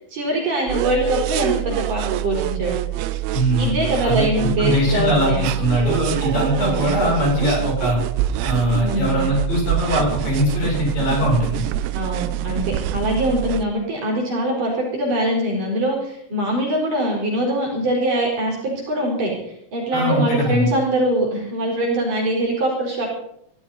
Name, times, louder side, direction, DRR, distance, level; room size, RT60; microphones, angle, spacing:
voice 1, 0.1-2.8 3.6-5.5 6.6-6.9 8.8-9.3 11.9-23.1, right 1 dB, 45° right, -1 dB, 5.5 m, -23 dB
sound 1, 0.7-13.7, right 14 dB, 80° right, 3.1 m, -25 dB
voice 2, 3.3-4.3 4.6-8.0 8.4-11.7 19.9-20.7, equal, 45° left, -3 dB, 8.7 m, -21 dB
23.0 x 15.0 x 4.1 m, 0.71 s
omnidirectional pair, 5.7 m